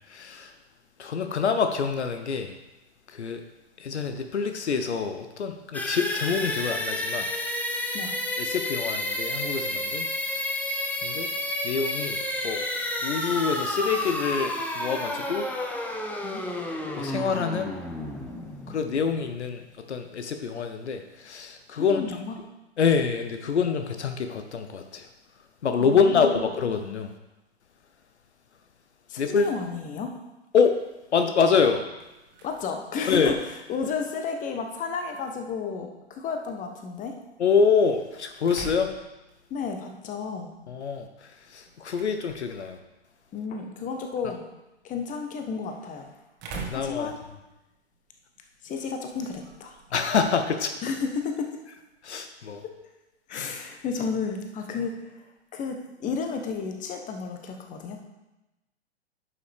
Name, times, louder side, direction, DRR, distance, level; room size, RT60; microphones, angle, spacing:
voice 1, 0.1-0.5 1.0-2.5 3.1-3.4 3.8-7.3 8.4-10.4 11.0-11.3 11.6-12.6 13.0-15.5 16.1-16.3 16.9-17.7 18.7-22.0 22.8-25.1 25.6-27.1 29.2-29.5 30.5-30.8 31.1-31.8 33.1-33.4 37.4-38.9 40.7-42.8 46.6-47.1 49.9-50.8 52.0-52.6 53.3-53.5, left 5 dB, 80° left, 7 dB, 0.8 m, -26 dB
sound 1, 5.7-19.4, left 1 dB, 5° left, 0.7 m, -31 dB
voice 2, 21.7-22.3 25.8-26.4 29.1-30.1 32.4-33.4 33.7-37.1 39.5-40.5 43.3-44.4 44.8-46.1 46.7-47.2 48.6-49.8 50.8-51.5 52.6-52.7 53.3-55.2 55.5-58.0, left 5 dB, 25° left, 5 dB, 1.1 m, -32 dB
sound 2, 31.6-51.4, right 4 dB, 30° right, 1.6 m, -48 dB
11.0 x 5.7 x 3.5 m, 1.0 s
hypercardioid pair, 110°, 33 cm